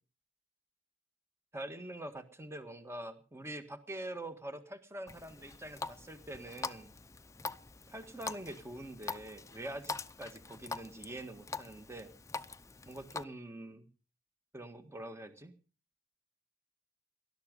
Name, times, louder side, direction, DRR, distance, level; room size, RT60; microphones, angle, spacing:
voice 1, 1.5-6.9 7.9-9.9 10.2-12.1 12.9-13.9 14.5-15.6, right 1 dB, 15° right, 9 dB, 1.6 m, -45 dB
Water tap faucet, 5.1-13.2, left 4 dB, 15° left, 0.7 m, -44 dB
19.5 x 12.0 x 5.3 m, 0.37 s
head